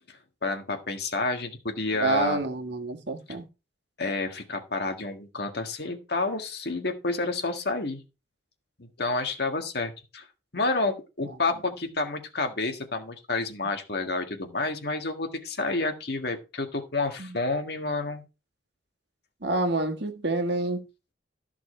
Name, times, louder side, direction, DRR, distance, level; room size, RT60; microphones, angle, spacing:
voice 1, 0.1-2.4 4.0-8.0 8.8-10.3 10.5-18.2, left 3 dB, 55° left, 1.7 m, -29 dB
voice 2, 2.0-3.4 17.2-17.4 19.4-20.8, right 2 dB, 65° right, 1.5 m, -28 dB
13.5 x 6.0 x 4.3 m
head